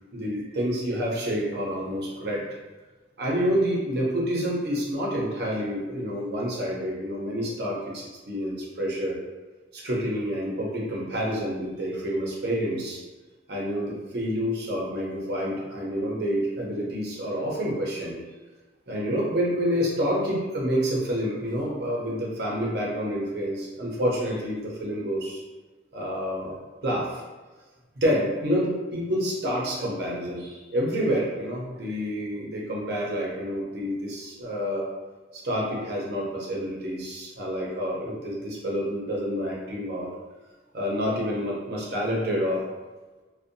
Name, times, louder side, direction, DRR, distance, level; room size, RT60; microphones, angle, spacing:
voice 1, 0.1-2.4 3.2-9.2 9.7-13.0 13.5-18.2 18.9-25.4 25.9-26.6 26.8-27.2 28.0-34.9 35.3-40.1 40.7-42.6, equal, 55° right, -4 dB, 0.6 m, -28 dB
2.6 x 2.1 x 2.6 m, 1.3 s
head